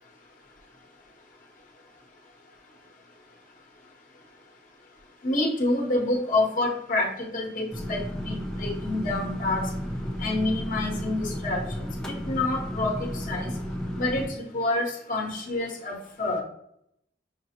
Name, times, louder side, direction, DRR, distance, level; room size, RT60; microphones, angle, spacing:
voice 1, 5.2-9.7 10.2-11.6 12.1-13.5 14.0-16.4, left 2 dB, 50° left, 0 dB, 0.9 m, -28 dB
sound 1, 7.7-14.3, equal, 5° left, 0.6 m, -33 dB
5.8 x 2.0 x 2.8 m, 0.74 s
head